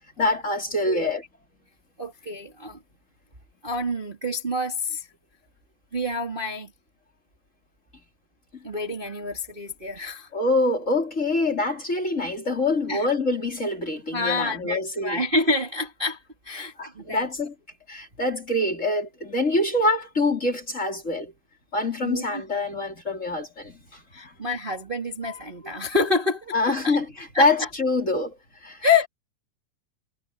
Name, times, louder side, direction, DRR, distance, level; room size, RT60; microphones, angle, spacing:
voice 1, 0.2-1.2 10.0-10.1 10.3-15.2 16.6-17.5 17.9-21.3 21.7-24.3 26.5-28.4 28.6-28.8, left 2 dB, 25° left, 3.6 m, -25 dB
voice 2, 2.0-2.8 3.6-5.1 5.9-6.7 8.6-10.3 12.9-13.1 14.1-16.2 16.4-17.3 22.0-22.4 24.1-26.5 26.8-27.0 27.3-27.7 28.8-29.1, left 3 dB, 15° right, 2.5 m, -27 dB
omnidirectional pair, 3.6 m